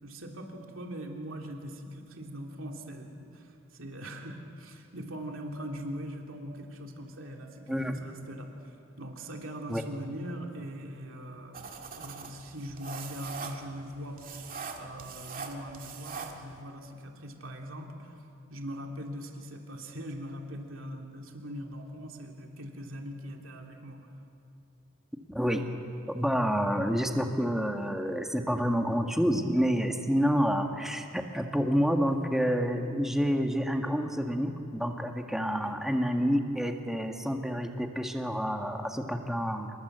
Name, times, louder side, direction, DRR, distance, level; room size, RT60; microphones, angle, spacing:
voice 1, 0.0-14.2 14.8-18.2 18.5-24.1 35.6-35.8, equal, 75° right, 2 dB, 3.0 m, -41 dB
sound 1, 11.5-16.6, right 5 dB, 45° right, 2.2 m, -42 dB
voice 2, 25.3-25.6 26.1-39.7, equal, ahead, 4 dB, 1.6 m, -28 dB
27.0 x 21.0 x 8.1 m, 2.7 s
head